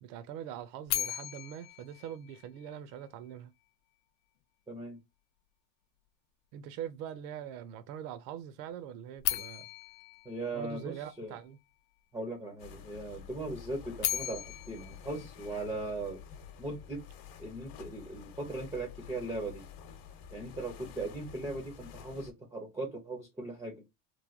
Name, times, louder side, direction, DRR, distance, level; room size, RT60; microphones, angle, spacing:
voice 1, 0.0-3.5 6.5-9.7 10.5-11.6, right 9 dB, 75° right, 0.6 m, -43 dB
sound 1, 0.9-3.0 9.2-11.4 13.7-16.1, left 14 dB, 75° left, 0.5 m, -37 dB
voice 2, 4.7-5.0 10.2-11.3 12.1-16.2 16.6-17.0 17.4-19.6 20.3-23.8, right 2 dB, 10° right, 0.3 m, -39 dB
sound 2, 12.6-22.3, left 8 dB, 45° left, 0.8 m, -50 dB
3.1 x 2.2 x 2.4 m
supercardioid pair, 115°, 50 cm